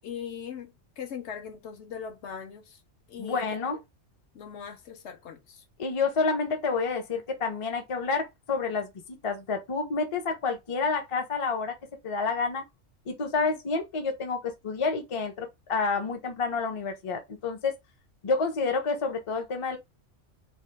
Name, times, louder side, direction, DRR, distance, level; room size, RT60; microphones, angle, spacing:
voice 1, 0.0-2.8 3.1-3.5 4.3-5.6, left 7 dB, 70° left, 0.9 m, -40 dB
voice 2, 3.2-3.8 5.8-11.7 12.0-12.6 13.1-17.8 18.2-19.8, left 4 dB, 35° left, 0.5 m, -29 dB
2.8 x 2.2 x 3.2 m
omnidirectional pair, 1.3 m